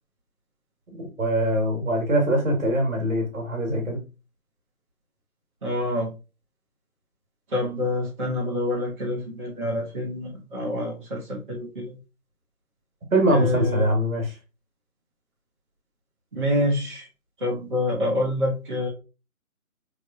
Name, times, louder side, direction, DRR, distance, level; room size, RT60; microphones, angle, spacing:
voice 1, 1.0-4.0 13.1-14.3, right 1 dB, 60° right, 2 dB, 1.7 m, -23 dB
voice 2, 5.6-6.1 7.5-12.0 13.3-13.9 16.3-17.1 17.4-18.9, left 1 dB, 35° right, -7 dB, 1.1 m, -27 dB
3.4 x 3.2 x 2.5 m, 0.30 s
figure-of-eight pair, 170°, 43 cm